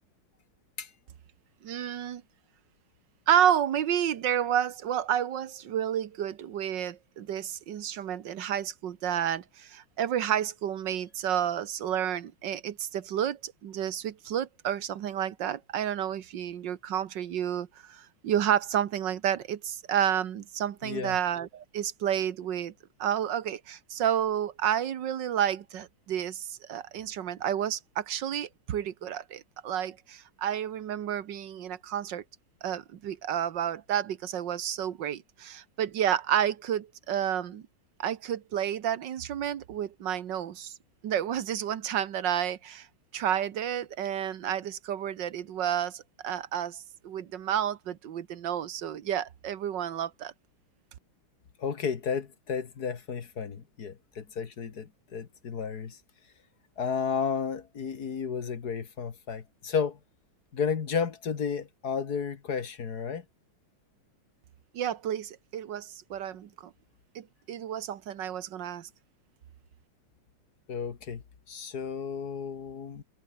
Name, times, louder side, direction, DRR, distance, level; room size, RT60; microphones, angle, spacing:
voice 1, 1.6-2.2 3.3-22.7 23.0-32.2 32.6-37.6 38.0-40.8 41.0-42.9 43.1-50.3 64.7-66.5 67.1-68.9, right 10 dB, 60° right, 1.7 m, -30 dB
voice 2, 20.8-21.2 51.6-56.0 56.8-60.0 60.5-63.2 70.7-73.0, left 6 dB, 50° left, 2.1 m, -33 dB
omnidirectional pair, 2.3 m